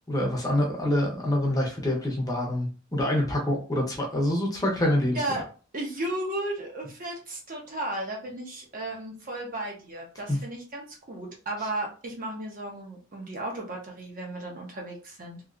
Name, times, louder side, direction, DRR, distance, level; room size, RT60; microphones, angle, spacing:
voice 1, 0.1-5.2 10.3-10.4, left 1 dB, 15° left, -1 dB, 0.7 m, -26 dB
voice 2, 5.1-5.4 5.7-15.4, right 1 dB, 40° right, 0 dB, 0.8 m, -34 dB
3.0 x 2.8 x 2.5 m, 0.36 s
head